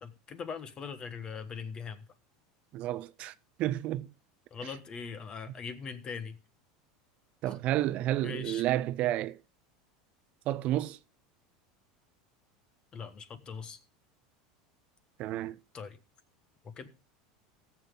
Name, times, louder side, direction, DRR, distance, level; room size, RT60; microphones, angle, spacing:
voice 1, 0.0-2.1 4.5-6.4 7.5-7.6 8.2-8.7 12.9-13.8 15.7-16.0 16.6-16.9, left 6 dB, 30° left, 1.3 m, -41 dB
voice 2, 2.7-3.3 3.6-4.1 7.4-9.4 10.5-11.0 15.2-15.6, right 14 dB, 45° right, 0.4 m, -30 dB
16.5 x 7.3 x 3.7 m
supercardioid pair, 135°, 3 cm